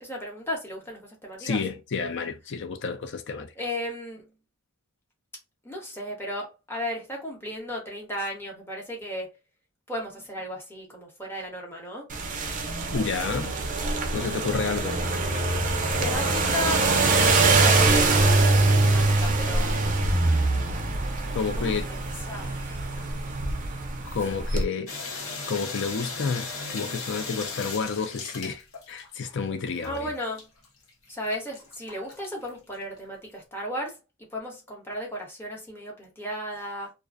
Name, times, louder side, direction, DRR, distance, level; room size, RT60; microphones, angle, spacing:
voice 1, 0.0-1.6 3.6-4.3 5.6-9.3 9.9-12.1 16.0-18.1 18.5-19.9 21.6-22.9 29.8-30.5 31.1-34.0 34.3-36.9, equal, 10° left, 0.9 m, -35 dB
voice 2, 1.4-3.5 12.9-13.6 14.1-15.0 21.3-21.9 24.1-24.9 25.5-30.1, left 5 dB, 55° left, 0.5 m, -30 dB
sound 1, 12.1-24.6, right 2 dB, 35° right, 0.4 m, -23 dB
sound 2, 24.9-29.3 29.8-32.8, left 4 dB, 70° left, 0.8 m, -37 dB
2.4 x 2.1 x 2.4 m
head